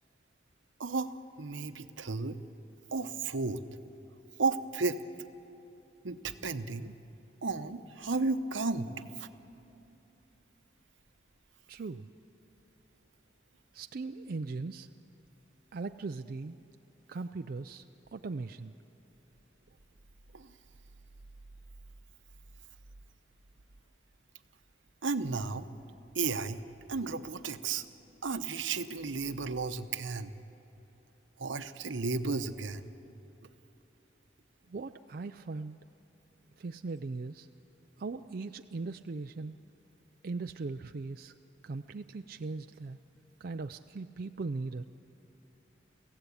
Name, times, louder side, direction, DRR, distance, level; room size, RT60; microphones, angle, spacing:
voice 1, 0.8-2.4 2.9-3.6 4.4-5.0 6.0-6.9 7.4-9.3 20.3-20.5 25.0-25.7 26.1-26.6 26.9-27.8 28.2-30.3 31.4-32.8, right 4 dB, 80° right, 10 dB, 0.9 m, -33 dB
voice 2, 11.7-12.1 13.7-14.9 15.7-16.6 17.1-17.8 18.1-18.7 34.7-35.8 36.6-37.5 38.0-39.6 40.2-41.3 41.6-43.0 43.4-44.8, right 3 dB, 50° right, 7 dB, 0.4 m, -39 dB
24.0 x 16.0 x 8.5 m, 2.9 s
head